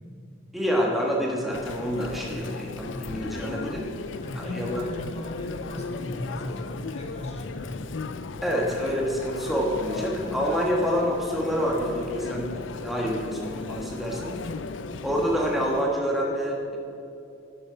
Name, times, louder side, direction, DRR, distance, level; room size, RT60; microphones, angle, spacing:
voice 1, 0.5-3.9 4.3-4.9 8.4-14.3 15.0-16.8, equal, ahead, -3 dB, 1.5 m, -27 dB
Chatter, 1.5-15.8, left 4 dB, 75° left, 0.5 m, -36 dB
voice 2, 4.2-7.8, left 1 dB, 35° left, 0 dB, 1.9 m, -36 dB
11.5 x 8.6 x 5.7 m, 2.8 s
head